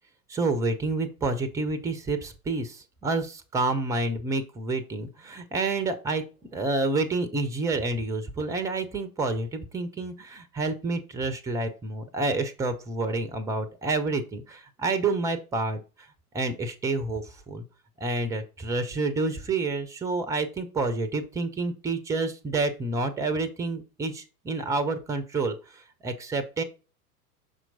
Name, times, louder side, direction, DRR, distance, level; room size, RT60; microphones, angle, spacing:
voice 1, 0.3-6.2 6.5-15.8 16.3-17.6 18.0-26.6, right 3 dB, 5° right, 11 dB, 0.5 m, -29 dB
6.3 x 4.4 x 3.9 m, 0.33 s
figure-of-eight pair, 90°, 46 cm